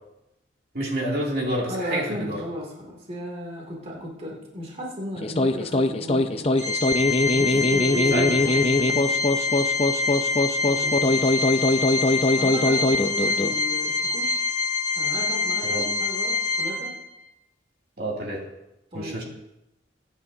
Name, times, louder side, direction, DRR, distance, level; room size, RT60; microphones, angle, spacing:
voice 1, 0.7-2.4 8.1-8.3 15.6-15.9 18.0-18.5 18.9-19.2, right 1 dB, 55° right, -3 dB, 2.7 m, -28 dB
voice 2, 1.7-6.7 7.3-9.3 10.7-11.5 12.4-14.5 15.0-16.9 18.9-19.2, equal, 30° right, -1 dB, 2.6 m, -35 dB
sound 1, 5.2-13.6, left 2 dB, 30° left, 0.6 m, -22 dB
Organ, 6.6-17.2, left 4 dB, 15° left, 2.4 m, -26 dB
23.5 x 9.6 x 2.8 m, 0.91 s
head